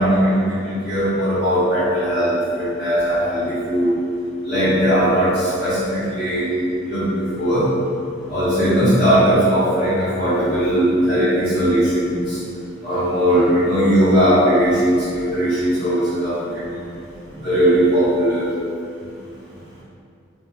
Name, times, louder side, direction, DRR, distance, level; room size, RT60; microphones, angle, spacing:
voice 1, 0.0-3.9 4.4-6.5 6.8-7.7 8.3-12.4 12.8-16.7 17.4-18.5, equal, 30° left, -18 dB, 0.9 m, -18 dB
2.8 x 2.4 x 2.3 m, 2.4 s
head